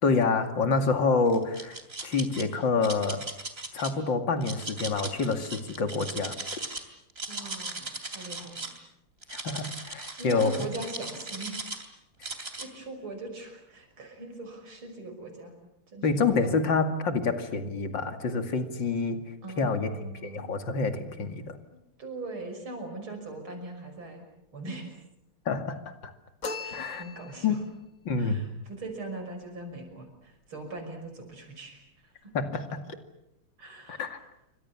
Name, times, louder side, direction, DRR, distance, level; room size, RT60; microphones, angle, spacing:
voice 1, 0.0-3.2 3.7-6.3 9.3-10.7 16.0-19.2 19.6-21.6 25.5-26.1 26.7-27.0 27.4-27.5 28.0-28.5 32.3-32.8 33.9-34.2, left 4 dB, 60° left, 7 dB, 3.0 m, -27 dB
sound 1, 1.3-2.4 2.8-3.9 4.4-6.8 7.1-8.8 9.2-11.9 12.2-12.7, right 2 dB, 25° right, 3.1 m, -38 dB
voice 2, 7.3-8.7 10.2-11.7 12.3-15.5 15.9-16.6 19.4-20.5 21.7-24.2 24.5-25.0 26.6-27.6 28.2-32.3 33.6-34.1, right 2 dB, 70° right, 5 dB, 6.7 m, -41 dB
sound 2, 26.4-27.7, left 4 dB, 40° left, 2.1 m, -38 dB
28.0 x 25.5 x 7.2 m, 0.83 s
omnidirectional pair, 2.4 m